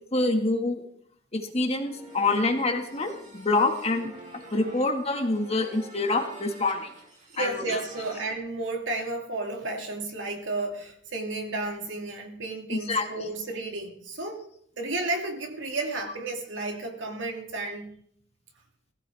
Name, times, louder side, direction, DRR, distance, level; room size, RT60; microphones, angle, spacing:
voice 1, 0.1-0.8 1.3-4.2 4.5-6.9 7.4-7.8 12.7-13.3, left 2 dB, 35° left, 3 dB, 2.0 m, -26 dB
sound 1, 1.8-8.4, right 1 dB, 45° right, 2.9 m, -47 dB
voice 2, 7.3-14.4 14.8-18.0, right 2 dB, 75° right, 2 dB, 2.6 m, -32 dB
18.0 x 15.5 x 3.6 m, 0.64 s
head